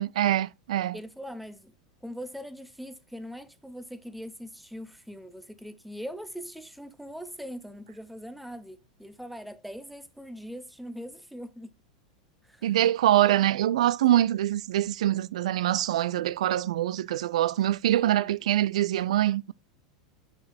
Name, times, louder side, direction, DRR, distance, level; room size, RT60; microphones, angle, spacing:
voice 1, 0.0-1.0 12.6-19.5, right 13 dB, 75° right, 0.3 m, -24 dB
voice 2, 0.9-1.7 2.0-11.7 12.4-12.7 13.4-13.6 17.9-18.4, equal, ahead, 0.7 m, -41 dB
6.2 x 5.1 x 3.4 m
hypercardioid pair, 100°, 4 cm